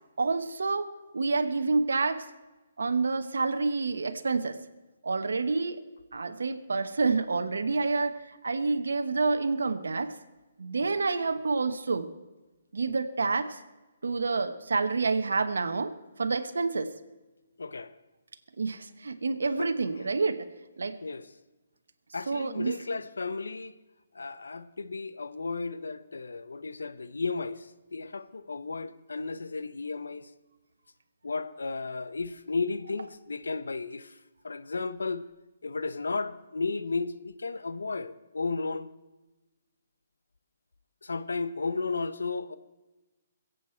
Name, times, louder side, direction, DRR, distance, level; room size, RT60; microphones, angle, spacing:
voice 1, 0.2-2.3 2.8-4.6 5.0-5.8 6.1-10.1 10.6-12.1 12.7-13.6 14.0-16.9 18.6-20.5 20.8-21.0 22.3-22.8, right 4 dB, 80° right, 1.0 m, -28 dB
voice 2, 17.6-17.9 19.6-20.0 21.0-21.3 22.1-23.7 24.1-30.3 31.2-34.2 34.4-35.2 35.6-38.9 41.0-42.6, left 4 dB, 85° left, 0.8 m, -34 dB
22.5 x 8.1 x 4.5 m
hypercardioid pair, 145°, 0 cm